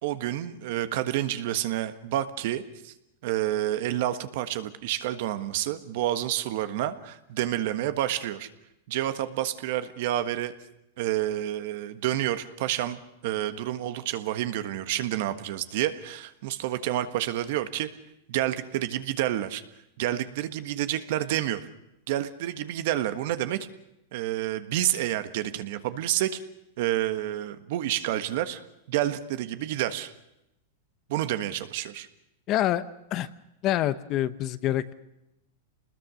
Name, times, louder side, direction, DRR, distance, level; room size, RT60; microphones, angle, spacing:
voice 1, 0.0-2.9 3.2-8.5 8.9-10.5 11.0-17.9 18.3-19.6 20.0-21.6 22.1-23.7 24.1-26.4 26.8-28.6 28.9-30.1 31.1-32.1, right 13 dB, 60° right, 10 dB, 1.5 m, -29 dB
voice 2, 32.5-32.8 33.1-33.3 33.6-34.9, left 13 dB, 35° left, 14 dB, 0.9 m, -26 dB
27.0 x 20.5 x 6.4 m, 0.86 s
supercardioid pair, 140°, 0 cm